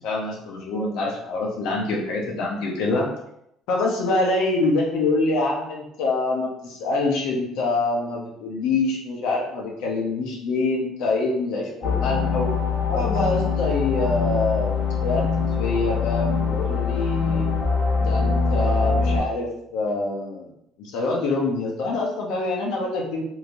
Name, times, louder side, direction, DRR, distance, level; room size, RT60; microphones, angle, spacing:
voice 1, 0.0-3.1 3.7-12.5 12.9-15.2 15.6-17.5 18.0-20.5 20.8-23.2, left 3 dB, 80° left, -1 dB, 0.8 m, -25 dB
sound 1, 11.8-19.2, left 5 dB, 40° left, 0.5 m, -23 dB
3.1 x 2.8 x 2.5 m, 0.78 s
cardioid pair, 135°, 0 cm